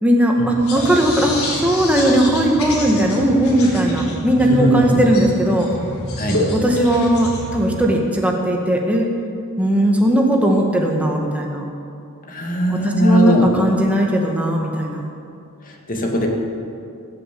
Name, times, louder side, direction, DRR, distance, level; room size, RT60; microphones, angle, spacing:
voice 1, 0.0-5.7 6.5-9.1 9.6-11.6 12.7-15.1, right 1 dB, 5° right, 0 dB, 1.9 m, -18 dB
sound 1, 0.6-7.8, left 1 dB, 70° left, 3.6 m, -28 dB
voice 2, 4.4-5.0 6.2-6.5 12.3-13.5 15.6-16.3, right 1 dB, 40° left, 1 dB, 2.2 m, -19 dB
19.0 x 7.5 x 8.6 m, 2.5 s
head